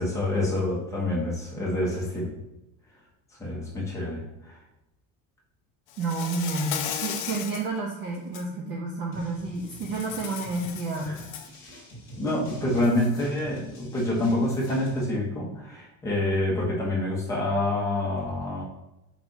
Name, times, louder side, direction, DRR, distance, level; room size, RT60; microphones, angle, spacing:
voice 1, 0.0-2.3 3.4-4.6 11.0-11.2 12.2-18.6, left 1 dB, 10° left, -5 dB, 0.9 m, -27 dB
Insect, 5.9-7.7 8.1-8.4 9.7-11.6, left 9 dB, 65° left, 0.6 m, -35 dB
voice 2, 6.0-11.1, right 3 dB, 30° right, -1 dB, 0.4 m, -30 dB
sound 1, 9.1-15.0, equal, 35° left, 1.5 m, -46 dB
4.6 x 2.6 x 3.9 m, 0.92 s
cardioid pair, 175°, 37 cm